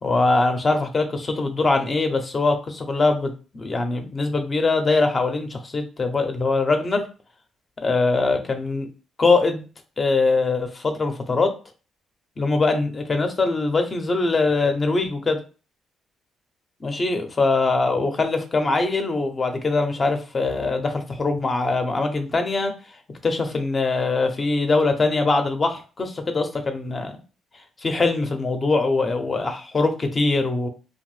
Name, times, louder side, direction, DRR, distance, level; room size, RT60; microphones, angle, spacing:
voice 1, 0.0-7.1 7.8-8.9 9.2-9.7 10.0-11.5 12.4-15.4 16.8-22.7 23.2-27.1 27.8-30.7, left 3 dB, 35° left, 6 dB, 0.5 m, -22 dB
2.6 x 2.1 x 3.2 m, 0.35 s
cardioid pair, 90°, 0 cm